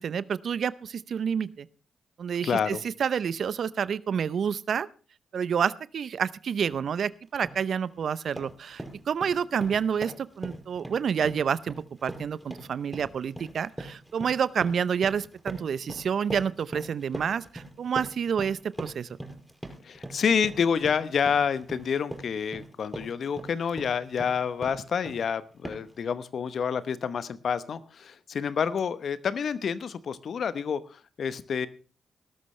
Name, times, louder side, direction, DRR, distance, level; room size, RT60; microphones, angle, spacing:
voice 1, 0.0-1.7 2.2-4.9 5.3-19.1, right 7 dB, 65° right, 18 dB, 0.7 m, -29 dB
voice 2, 2.4-2.8 19.8-31.7, left 6 dB, 60° left, 15 dB, 1.0 m, -28 dB
sound 1, 6.7-6.8 7.2-7.7 8.0-25.3 25.6-26.0, right 1 dB, 5° right, 5.4 m, -42 dB
19.0 x 12.5 x 3.2 m, 0.37 s
hypercardioid pair, 45°, 0 cm